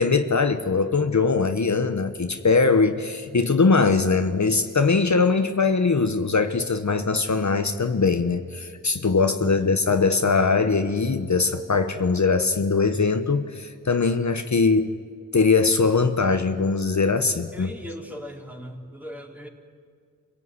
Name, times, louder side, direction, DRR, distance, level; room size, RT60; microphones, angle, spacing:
voice 1, 0.0-15.0 15.3-17.7, left 4 dB, 55° left, 8 dB, 1.1 m, -21 dB
voice 2, 17.5-19.5, equal, 5° right, 2 dB, 3.6 m, -39 dB
26.5 x 17.5 x 9.7 m, 2.1 s
wide cardioid pair, 60°, 33 cm